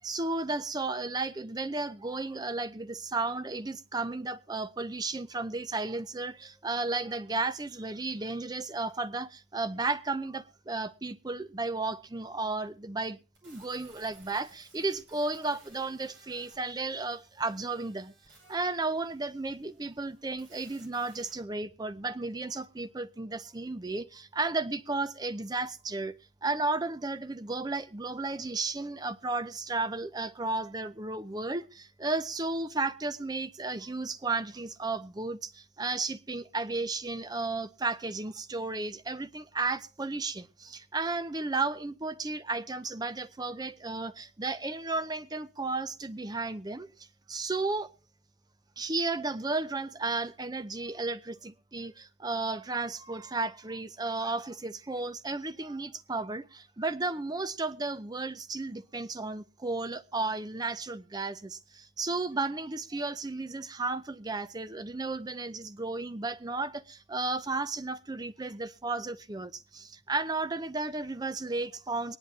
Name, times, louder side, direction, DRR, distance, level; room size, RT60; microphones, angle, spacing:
voice 1, 0.0-13.2 13.4-18.1 18.5-26.1 26.4-46.9 47.3-47.9 48.8-72.2, right 3 dB, 20° right, 0.6 m, -33 dB
sound 1, 13.3-21.3, right 2 dB, 70° right, 5.3 m, -59 dB
23.0 x 10.5 x 2.8 m
head